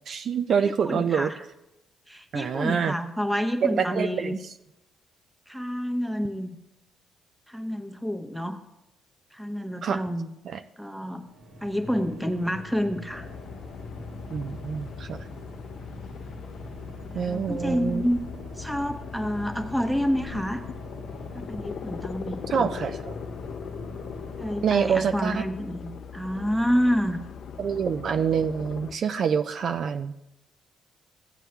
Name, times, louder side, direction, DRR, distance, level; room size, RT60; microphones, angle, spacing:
voice 1, 0.1-1.3 2.3-3.0 3.6-4.4 9.8-10.0 10.5-10.6 14.3-15.2 17.1-18.0 22.5-23.1 24.6-25.4 27.6-30.1, right 7 dB, 60° right, 9 dB, 0.4 m, -26 dB
voice 2, 0.6-1.4 2.1-4.4 5.5-6.5 7.5-8.6 9.3-10.3 10.8-11.3 11.6-13.3 17.1-18.2 18.6-20.6 21.3-22.7 24.4-27.2, equal, 5° right, 5 dB, 0.9 m, -28 dB
sound 1, 11.1-25.0, equal, 85° right, 1.9 m, -44 dB
sound 2, 13.1-29.0, left 7 dB, 65° left, 0.4 m, -40 dB
15.5 x 8.1 x 2.3 m, 0.89 s
cardioid pair, 90°, 0 cm